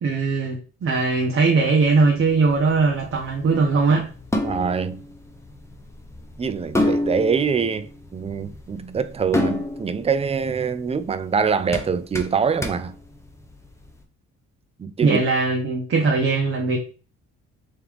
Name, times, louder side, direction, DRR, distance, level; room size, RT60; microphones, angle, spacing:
voice 1, 0.0-4.1 15.0-16.8, right 4 dB, 45° right, 0.8 m, -20 dB
sound 1, 1.8-13.9, left 1 dB, 10° left, 0.7 m, -30 dB
voice 2, 4.4-5.0 6.4-7.9 8.1-13.0 14.8-15.2, right 6 dB, 20° right, 0.4 m, -24 dB
3.6 x 3.2 x 3.4 m
cardioid pair, 90°, 30 cm